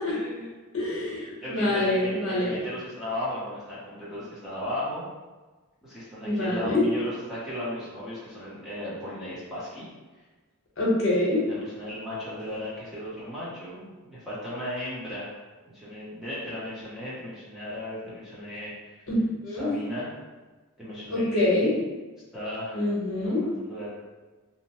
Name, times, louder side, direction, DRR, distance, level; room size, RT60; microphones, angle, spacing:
voice 1, 0.1-0.5 1.4-5.0 5.8-9.9 11.5-15.3 15.7-19.1 19.5-20.1 20.8-21.7 22.3-22.9 23.2-23.9, left 1 dB, ahead, -10 dB, 0.7 m, -36 dB
voice 2, 0.7-2.6 6.2-6.9 10.8-11.4 19.1-19.2 19.4-19.7 21.1-21.7 22.7-23.5, left 2 dB, 60° left, -6 dB, 0.9 m, -25 dB
2.7 x 2.0 x 2.9 m, 1.2 s
head